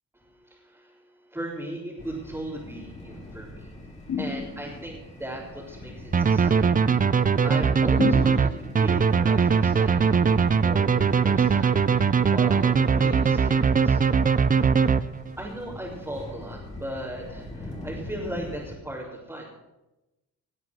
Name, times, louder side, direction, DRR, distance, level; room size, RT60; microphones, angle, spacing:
voice 1, 0.1-3.7 4.2-6.8 7.4-14.2 15.4-19.5, right 1 dB, 10° right, -7 dB, 4.1 m, -38 dB
sound 1, 2.0-18.8, left 1 dB, 25° left, 4.6 m, -43 dB
sound 2, 4.1-4.9 8.0-8.9, left 5 dB, 65° left, 3.5 m, -31 dB
sound 3, 6.1-15.4, right 6 dB, 30° right, 0.6 m, -21 dB
19.0 x 8.1 x 6.3 m, 1.0 s
cardioid pair, 90°, 30 cm